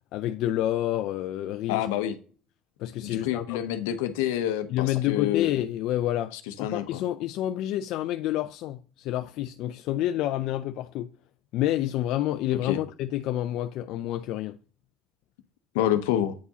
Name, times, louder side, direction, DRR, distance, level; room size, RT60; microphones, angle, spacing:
voice 1, 0.1-1.9 2.8-3.7 4.7-11.1 11.5-14.6, left 13 dB, 70° left, 0.3 m, -29 dB
voice 2, 1.7-2.1 3.0-5.5 6.6-7.0 12.6-12.8 15.7-16.4, left 11 dB, 90° left, 0.7 m, -27 dB
8.3 x 4.6 x 2.8 m
supercardioid pair, 90°, 0 cm